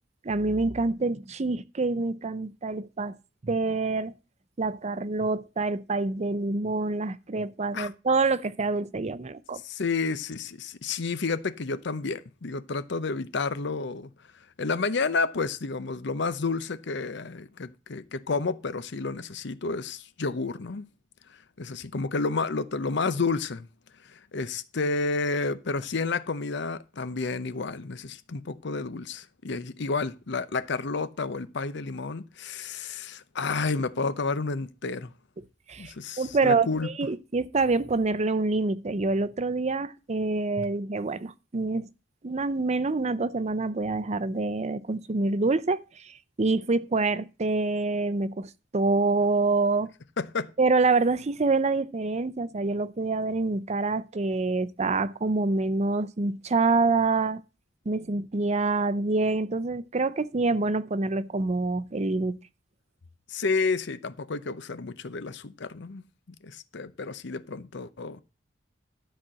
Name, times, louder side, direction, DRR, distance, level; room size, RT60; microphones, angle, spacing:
voice 1, 0.2-3.2 3.4-4.1 4.6-9.6 35.7-41.9 42.2-49.9 50.6-57.4 57.9-62.4, right 3 dB, 35° right, 0.6 m, -26 dB
voice 2, 9.6-14.1 14.6-20.9 21.6-23.7 24.0-35.1 35.8-36.9 50.2-50.5 63.3-66.0 66.4-68.2, left 4 dB, 65° left, 0.7 m, -30 dB
12.5 x 4.2 x 7.5 m
head